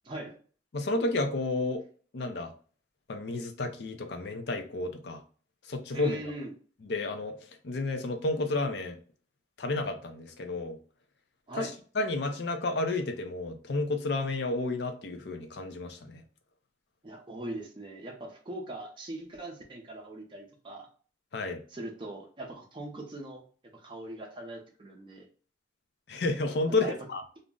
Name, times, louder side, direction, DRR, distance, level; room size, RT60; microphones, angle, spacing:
voice 1, 0.0-0.4 5.9-6.5 11.5-11.7 17.0-20.9 21.7-23.4 23.8-25.3 26.8-26.9, right 2 dB, 25° right, 0 dB, 0.5 m, -40 dB
voice 2, 0.7-1.8 2.1-2.5 3.1-5.2 5.7-6.2 6.9-7.3 7.6-9.0 9.6-10.8 11.6-16.2 21.3-21.6 26.1-27.2, left 2 dB, 65° left, 6 dB, 0.5 m, -31 dB
2.5 x 2.0 x 3.5 m, 0.41 s
head